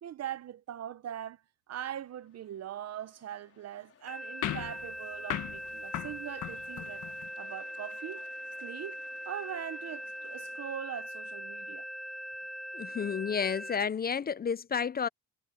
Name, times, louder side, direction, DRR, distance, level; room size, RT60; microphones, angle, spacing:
voice 1, 0.0-1.4 1.7-7.0 7.4-8.3 8.6-11.8, right 10 dB, 55° right, 1.0 m, -41 dB
sound 1, 1.9-10.8, left 7 dB, 50° left, 5.0 m, -61 dB
sound 2, 4.1-13.8, equal, ahead, 0.9 m, -41 dB
sound 3, 4.4-7.3, left 12 dB, 80° left, 1.7 m, -38 dB
voice 2, 12.7-15.1, left 6 dB, 30° left, 0.5 m, -31 dB
cardioid pair, 90°, 30 cm